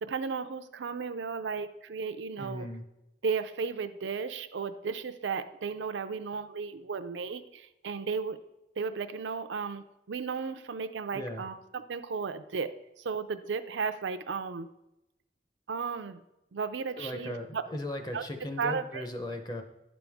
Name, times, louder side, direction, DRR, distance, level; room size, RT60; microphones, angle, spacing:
voice 1, 0.0-2.7 3.2-8.4 8.8-12.7 13.0-14.7 15.7-16.2 16.5-17.6 18.1-18.2 18.6-19.0, right 5 dB, 90° right, 10 dB, 0.5 m, -34 dB
voice 2, 2.4-2.8 11.1-11.4 17.0-19.6, left 1 dB, 25° left, 5 dB, 0.7 m, -37 dB
10.5 x 5.1 x 3.5 m, 0.92 s
head